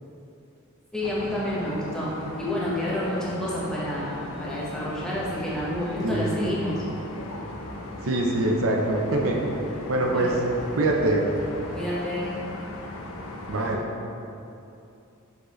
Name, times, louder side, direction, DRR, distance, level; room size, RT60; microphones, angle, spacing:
voice 1, 0.9-6.8 10.1-10.4 11.7-12.3, left 1 dB, 5° left, -8 dB, 1.2 m, -29 dB
sound 1, 1.0-13.8, left 2 dB, 70° left, 0.7 m, -38 dB
voice 2, 6.0-6.5 8.0-9.4 9.9-10.3 10.8-11.2 13.5-13.8, right 2 dB, 70° right, 0 dB, 0.6 m, -24 dB
6.3 x 5.2 x 3.1 m, 2.7 s
head